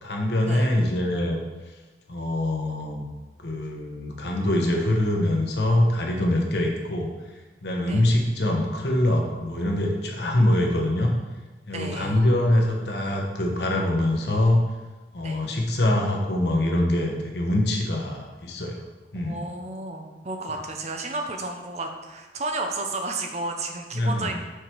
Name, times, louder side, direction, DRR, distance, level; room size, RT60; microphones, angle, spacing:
voice 1, 0.0-1.4 2.1-3.0 3.4-7.1 7.6-11.1 11.7-14.6 15.1-18.8 19.1-19.4 23.9-24.3, left 1 dB, 70° left, 1 dB, 1.2 m, -24 dB
voice 2, 11.7-12.2 15.2-15.4 19.2-24.3, right 2 dB, 35° right, 3 dB, 0.7 m, -32 dB
6.5 x 4.8 x 4.6 m, 1.2 s
head